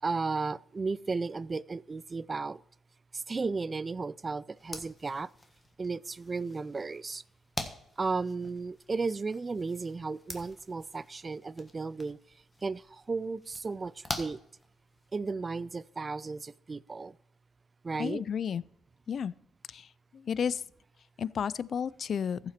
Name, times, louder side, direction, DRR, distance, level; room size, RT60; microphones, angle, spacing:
voice 1, 0.0-2.6 3.1-5.3 5.8-7.2 8.0-12.2 12.6-14.4 15.1-17.2 17.8-18.2, right 4 dB, 30° right, 0.3 m, -34 dB
sound 1, 4.5-15.2, left 2 dB, 20° left, 1.4 m, -45 dB
voice 2, 18.0-18.6 19.1-19.3 19.7-19.9 20.1-20.6 21.2-22.4, left 7 dB, 55° left, 0.3 m, -32 dB
14.5 x 5.9 x 4.4 m
cardioid pair, 90°, 0 cm